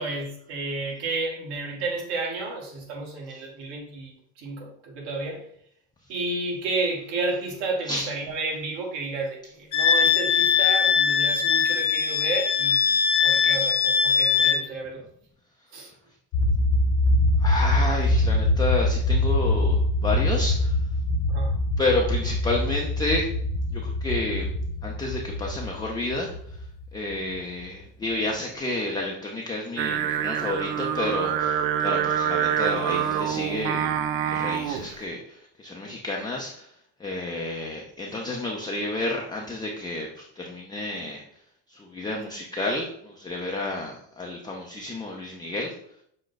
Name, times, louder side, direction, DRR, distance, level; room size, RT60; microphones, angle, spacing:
voice 1, 0.0-5.4 6.1-15.0 15.7-15.9 21.3-21.6, right 3 dB, 65° right, 0 dB, 1.6 m, -31 dB
Wind instrument woodwind instrument, 9.7-14.6, left 7 dB, 45° left, 0.8 m, -21 dB
sound 1, 16.3-27.6, left 1 dB, 75° left, 1.2 m, -24 dB
voice 2, 17.4-20.7 21.8-23.3 23.7-24.5 24.8-26.3 26.9-36.7 37.0-41.2 41.7-45.7, left 2 dB, 10° left, -1 dB, 0.4 m, -30 dB
Singing, 29.8-34.9, right 9 dB, 80° right, 0.6 m, -26 dB
6.2 x 2.2 x 3.9 m, 0.67 s
supercardioid pair, 125°, 45 cm